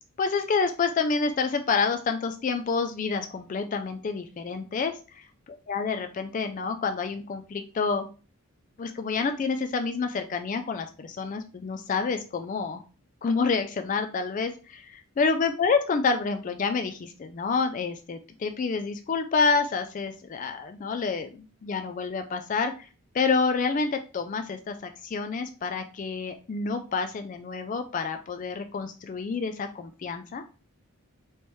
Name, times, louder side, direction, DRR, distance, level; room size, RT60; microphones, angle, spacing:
voice 1, 0.2-5.3 5.7-8.1 8.8-12.8 13.2-22.9 23.1-30.4, left 4 dB, 35° left, 7 dB, 0.3 m, -28 dB
4.3 x 3.3 x 3.1 m, 0.35 s
head